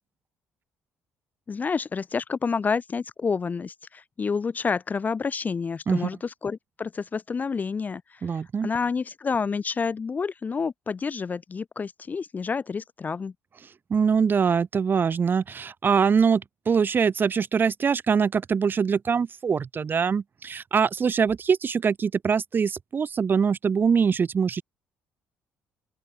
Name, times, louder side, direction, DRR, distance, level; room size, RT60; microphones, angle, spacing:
voice 1, 1.5-13.3, left 5 dB, 35° left, 0.6 m, -29 dB
voice 2, 8.2-8.7 13.9-24.6, right 6 dB, 40° right, 1.8 m, -23 dB
open air
supercardioid pair, 65°, 5 cm